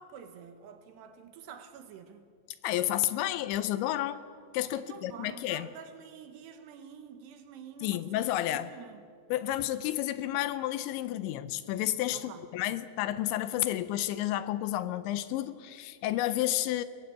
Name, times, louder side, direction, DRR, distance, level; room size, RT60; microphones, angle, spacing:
voice 1, 0.0-2.3 4.8-9.0 12.1-12.5, right 7 dB, 70° right, 3.0 m, -48 dB
voice 2, 2.6-4.2 4.5-5.7 7.8-8.7 9.3-16.8, left 13 dB, 80° left, 2.8 m, -31 dB
23.0 x 19.0 x 8.3 m
omnidirectional pair, 5.5 m